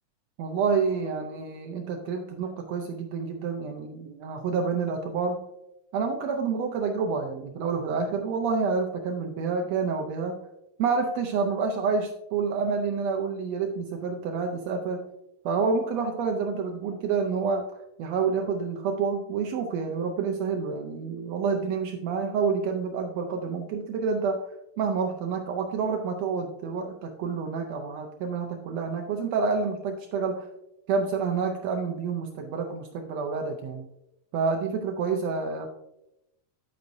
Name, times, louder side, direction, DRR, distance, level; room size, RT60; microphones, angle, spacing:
voice 1, 0.4-5.4 5.9-10.4 10.8-15.1 15.4-24.4 24.8-30.5 30.9-33.9 34.3-35.7, right 5 dB, 90° right, 3 dB, 1.4 m, -28 dB
10.0 x 8.4 x 2.6 m, 0.88 s
omnidirectional pair, 3.8 m